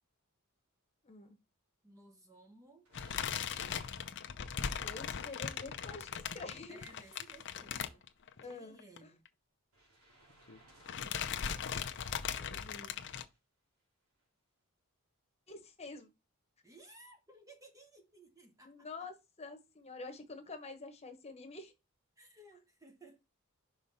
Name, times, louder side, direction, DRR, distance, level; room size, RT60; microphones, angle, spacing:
voice 1, 1.0-1.4 4.7-6.8 8.4-9.1 12.3-12.9 15.5-16.1 18.6-21.7, left 3 dB, 30° left, 1.2 m, -48 dB
voice 2, 1.8-2.9 6.7-8.0 8.4-9.2 16.6-18.7 22.2-23.2, right 2 dB, 15° right, 1.0 m, -58 dB
sound 1, 2.8-6.0 6.9-8.7 9.7-12.3 13.0-13.4 14.2-14.3, right 1 dB, 75° right, 3.1 m, -65 dB
sound 2, 2.9-8.5 8.8-9.0 9.2-9.3 10.3-10.6 10.9-13.2, left 7 dB, 55° left, 0.7 m, -39 dB
5.7 x 3.8 x 5.5 m
head